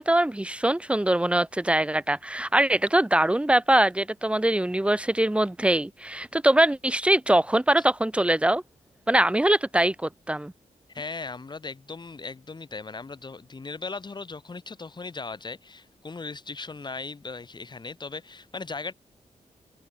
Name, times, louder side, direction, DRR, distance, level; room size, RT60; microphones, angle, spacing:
voice 1, 0.0-8.6 9.1-10.5, right 1 dB, 10° right, 1.6 m, -22 dB
voice 2, 10.9-18.9, left 4 dB, 35° left, 4.9 m, -38 dB
wide cardioid pair, 100°, 13 cm